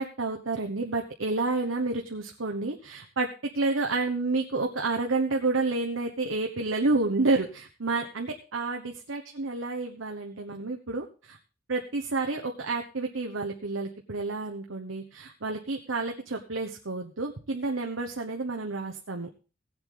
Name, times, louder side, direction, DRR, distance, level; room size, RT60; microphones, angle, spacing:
voice 1, 0.0-3.3 3.5-11.4 11.7-19.3, right 3 dB, 90° right, 2 dB, 1.2 m, -30 dB
17.5 x 8.0 x 3.9 m, 0.34 s
head